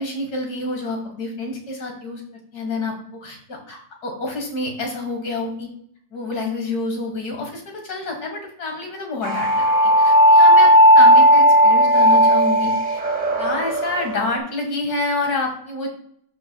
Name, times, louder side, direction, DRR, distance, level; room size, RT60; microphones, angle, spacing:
voice 1, 0.0-2.2 2.5-5.7 6.1-12.7 13.4-15.9, left 2 dB, 70° left, 1 dB, 2.3 m, -28 dB
sound 1, 9.2-14.4, equal, 40° right, 0.9 m, -14 dB
12.5 x 4.8 x 2.3 m, 0.65 s
omnidirectional pair, 1.7 m